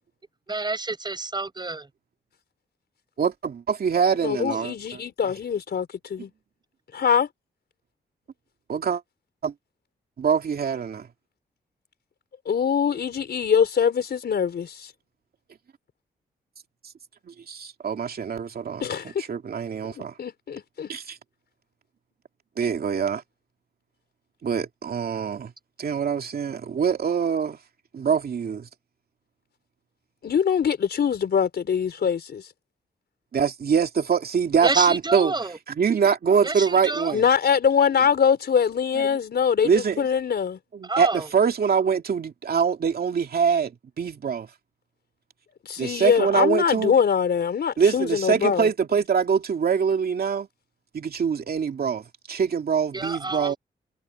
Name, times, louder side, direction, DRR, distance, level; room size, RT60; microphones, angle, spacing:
voice 1, 0.5-1.9 34.6-35.6 36.4-37.1 40.9-41.3 52.9-53.5, right 3 dB, 25° right, 7.1 m, -29 dB
voice 2, 3.2-5.0 8.7-9.0 9.4-9.5 10.2-11.1 17.3-18.9 19.2-20.1 20.9-21.2 22.6-23.2 24.4-25.5 25.8-27.6 27.9-28.7 33.3-35.3 35.8-37.2 38.9-39.2 39.6-40.1 40.7-44.5 45.8-46.9 47.8-50.5 50.9-53.5, right 6 dB, 60° right, 2.5 m, -24 dB
voice 3, 4.2-6.3 6.9-7.3 12.5-14.9 18.8-19.1 20.2-20.9 30.2-32.4 37.1-40.6 45.6-48.7, left 7 dB, 65° left, 4.5 m, -23 dB
cardioid pair, 85°, 18 cm